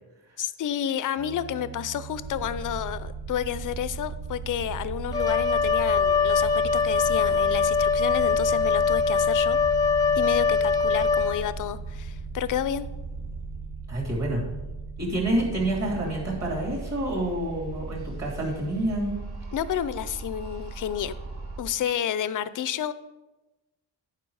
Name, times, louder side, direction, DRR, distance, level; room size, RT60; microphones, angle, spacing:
voice 1, 0.4-9.6 10.2-12.9 19.5-21.1 21.6-22.9, left 10 dB, 45° left, 15 dB, 0.5 m, -30 dB
sound 1, 1.2-16.5, right 7 dB, 85° right, 1.2 m, -40 dB
sound 2, 2.2-21.6, right 3 dB, 60° right, 1.7 m, -38 dB
Wind instrument woodwind instrument, 5.1-11.7, left 5 dB, 10° left, 0.7 m, -23 dB
voice 2, 13.9-14.5 15.0-19.1, right 1 dB, 35° right, -3 dB, 2.9 m, -28 dB
10.5 x 4.8 x 4.7 m, 1.1 s
cardioid pair, 115°, 44 cm